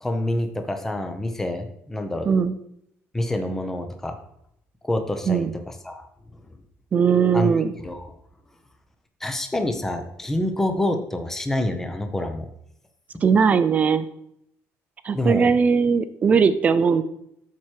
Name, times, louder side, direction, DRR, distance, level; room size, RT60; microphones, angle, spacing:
voice 1, 0.0-2.3 3.1-4.2 4.9-5.5 5.8-6.1 7.3-7.5 7.8-8.1 9.2-12.5 15.1-15.5, left 1 dB, 5° left, 6 dB, 0.7 m, -26 dB
voice 2, 2.3-2.6 5.3-5.5 6.9-7.7 13.2-14.1 15.0-17.0, right 6 dB, 30° right, 12 dB, 0.5 m, -19 dB
12.0 x 4.7 x 4.5 m, 0.76 s
cardioid pair, 160°, 5 cm